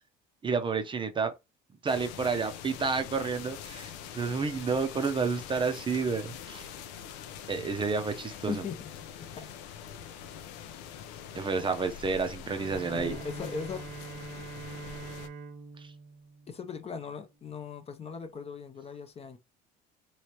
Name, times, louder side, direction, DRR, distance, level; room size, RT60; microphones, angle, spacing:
voice 1, 0.4-1.3 1.8-6.7 7.5-8.6 11.3-13.2 15.8-15.9, right 4 dB, 25° right, 0.6 m, -30 dB
sound 1, 1.9-15.3, left 8 dB, 90° left, 0.6 m, -44 dB
voice 2, 8.5-8.8 9.4-9.5 12.9-13.8 16.5-19.4, left 5 dB, 30° left, 0.6 m, -38 dB
Bowed string instrument, 12.5-17.3, right 4 dB, 80° right, 1.0 m, -45 dB
3.1 x 3.1 x 2.9 m
cardioid pair, 115°, 21 cm